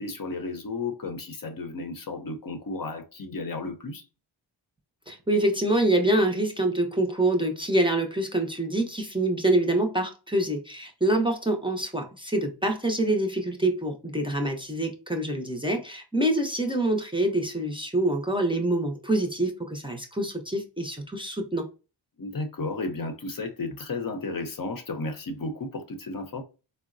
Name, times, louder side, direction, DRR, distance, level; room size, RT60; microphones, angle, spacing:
voice 1, 0.0-4.1 22.2-26.4, left 3 dB, 45° left, 0.7 m, -33 dB
voice 2, 5.1-21.7, right 1 dB, 10° right, 0.6 m, -26 dB
3.8 x 2.0 x 2.5 m
cardioid pair, 50°, 50 cm